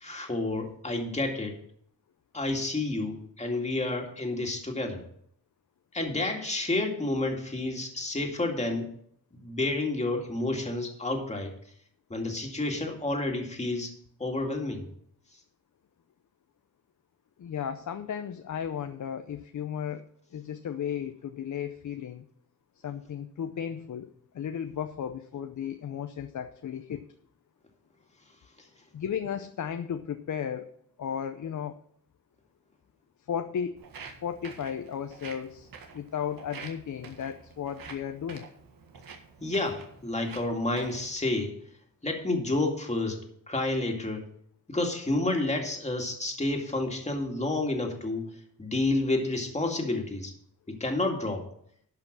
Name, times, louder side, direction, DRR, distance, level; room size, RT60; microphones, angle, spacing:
voice 1, 0.0-1.6 2.3-5.0 5.9-8.9 9.4-11.5 12.1-13.9 14.2-14.9 39.4-41.6 42.0-44.3 44.7-48.3 48.6-50.3 50.7-51.4, left 2 dB, 20° left, 2 dB, 2.2 m, -30 dB
voice 2, 17.4-22.3 22.8-27.1 28.9-31.8 33.3-33.8 34.2-38.5, left 8 dB, 60° left, 9 dB, 0.7 m, -35 dB
Walk footsteps, 33.8-41.1, right 5 dB, 85° right, 1.7 m, -47 dB
12.0 x 5.7 x 6.1 m, 0.65 s
wide cardioid pair, 105°, 34 cm